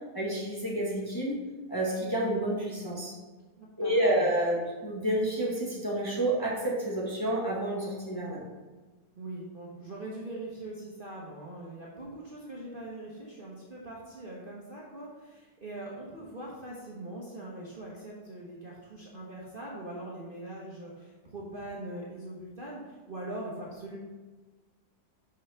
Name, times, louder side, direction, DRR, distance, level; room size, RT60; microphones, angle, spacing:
voice 1, 0.1-1.4 1.7-3.1 3.8-8.4, right 1 dB, 15° left, -5 dB, 1.4 m, -29 dB
voice 2, 3.6-4.3 9.1-24.0, right 1 dB, 35° right, -5 dB, 1.1 m, -42 dB
5.5 x 5.5 x 5.7 m, 1.3 s
omnidirectional pair, 1.9 m